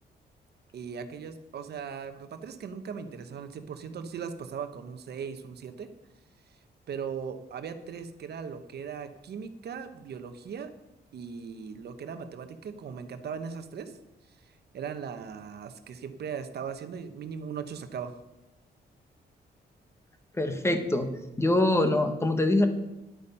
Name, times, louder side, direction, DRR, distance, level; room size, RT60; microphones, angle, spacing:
voice 1, 0.7-5.9 6.9-10.7 11.1-14.0 14.7-18.1, right 6 dB, 65° right, 9 dB, 1.1 m, -38 dB
voice 2, 20.4-21.1 21.4-22.7, left 1 dB, 15° left, 7 dB, 1.2 m, -24 dB
10.5 x 8.5 x 5.5 m, 0.97 s
cardioid pair, 130°, 18 cm